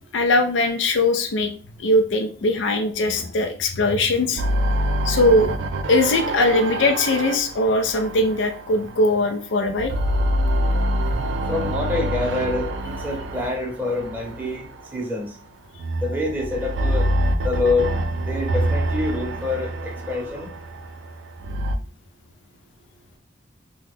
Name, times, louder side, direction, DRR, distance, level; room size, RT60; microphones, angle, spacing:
voice 1, 0.1-1.5 1.8-4.4 5.0-5.5 5.9-9.9, left 2 dB, 85° left, 6 dB, 0.4 m, -20 dB
sound 1, 4.4-9.3 9.7-15.0 15.8-21.8, right 1 dB, 80° right, 0.4 m, -26 dB
voice 2, 11.5-14.7 14.9-15.3 16.0-17.1 17.4-17.9 18.3-20.5, left 3 dB, 10° right, -1 dB, 0.7 m, -26 dB
2.8 x 2.2 x 3.6 m, 0.40 s
head